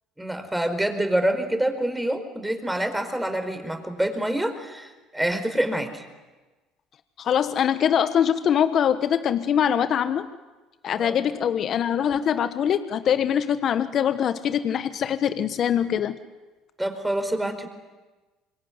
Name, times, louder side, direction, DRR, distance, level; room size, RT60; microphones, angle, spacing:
voice 1, 0.2-6.0 11.0-11.2 16.8-17.7, right 1 dB, 5° right, 7 dB, 4.9 m, -26 dB
voice 2, 7.2-10.3 10.8-16.2, left 9 dB, 50° left, 11 dB, 1.2 m, -23 dB
26.0 x 22.5 x 9.4 m, 1.2 s
supercardioid pair, 75°, 0 cm